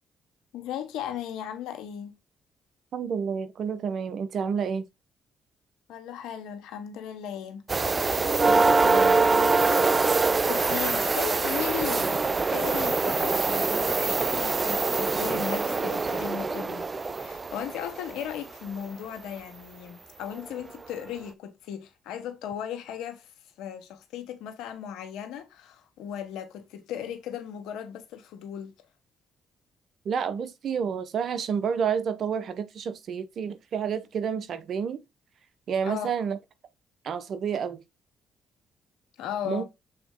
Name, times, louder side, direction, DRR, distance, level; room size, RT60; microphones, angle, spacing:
voice 1, 0.5-2.2 5.9-7.6 8.3-10.0 10.5-16.9 17.2-23.3 23.6-28.7 35.8-36.1 39.2-39.6, left 9 dB, 80° left, 1.2 m, -37 dB
voice 2, 2.9-4.8 8.5-9.2 30.0-35.0 35.7-36.4 37.0-37.8 39.5-39.6, right 7 dB, 65° right, 0.9 m, -30 dB
sound 1, 7.7-18.3 20.3-20.4 21.0-21.1, right 3 dB, 35° right, 0.6 m, -24 dB
7.0 x 4.0 x 3.7 m
supercardioid pair, 55°, 0 cm